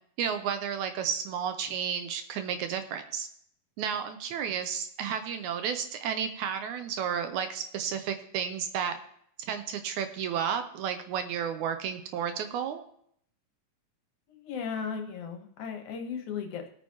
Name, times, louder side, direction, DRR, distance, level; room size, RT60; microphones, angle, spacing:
voice 1, 0.2-3.3 3.8-9.0 9.5-12.8, right 8 dB, 80° right, 8 dB, 2.0 m, -32 dB
voice 2, 14.3-16.7, left 6 dB, 70° left, 5 dB, 2.4 m, -36 dB
17.5 x 8.9 x 2.9 m, 0.67 s
omnidirectional pair, 3.7 m